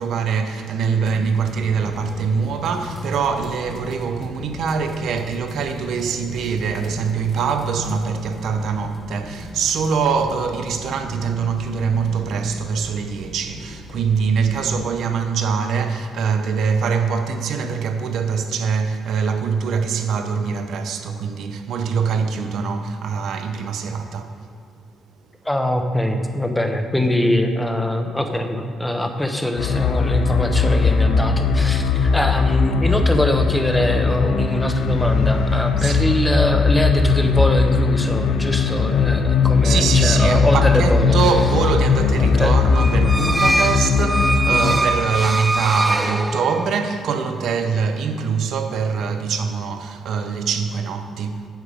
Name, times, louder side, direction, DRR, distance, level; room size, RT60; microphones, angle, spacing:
voice 1, 0.0-24.3 35.8-36.2 39.6-51.5, right 5 dB, 70° right, 0.8 m, -23 dB
sound 1, 1.0-14.9, left 1 dB, 35° left, 1.1 m, -38 dB
voice 2, 25.4-41.2 42.2-42.6, left 1 dB, 10° left, 1.0 m, -22 dB
sound 2, 29.6-44.8, left 4 dB, 80° left, 0.6 m, -19 dB
sound 3, 42.7-46.9, right 2 dB, 15° right, 0.6 m, -22 dB
9.2 x 6.9 x 5.0 m
cardioid pair, 90°, 0 cm